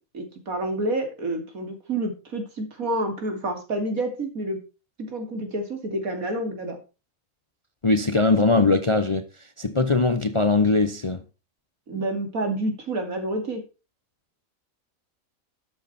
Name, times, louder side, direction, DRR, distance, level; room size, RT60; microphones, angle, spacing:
voice 1, 0.1-4.6 5.1-6.8 11.9-13.6, right 1 dB, 75° right, 3.0 m, -28 dB
voice 2, 7.8-9.3 9.6-11.2, left 3 dB, 30° left, 0.6 m, -21 dB
12.5 x 7.9 x 4.3 m
omnidirectional pair, 1.5 m